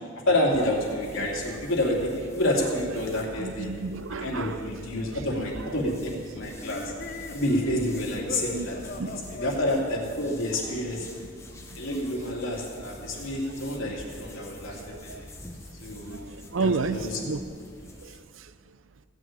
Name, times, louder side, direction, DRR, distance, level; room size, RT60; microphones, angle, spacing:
voice 1, 0.3-3.7 4.2-6.9 7.3-8.8 9.3-11.1 11.7-15.3 15.8-16.2 16.6-17.2, left 1 dB, 90° left, -3 dB, 3.0 m, -28 dB
sound 1, 0.5-18.3, left 1 dB, 15° left, 1.0 m, -46 dB
voice 2, 3.4-4.6 5.1-5.2 8.5-9.4 11.6-11.8 13.5-13.9 14.7-15.2 15.9-17.4 18.0-18.5, right 3 dB, 80° right, 13 dB, 0.6 m, -33 dB
sound 2, 6.6-11.2, left 2 dB, 45° left, 0.7 m, -39 dB
16.0 x 6.3 x 8.8 m, 2.1 s
head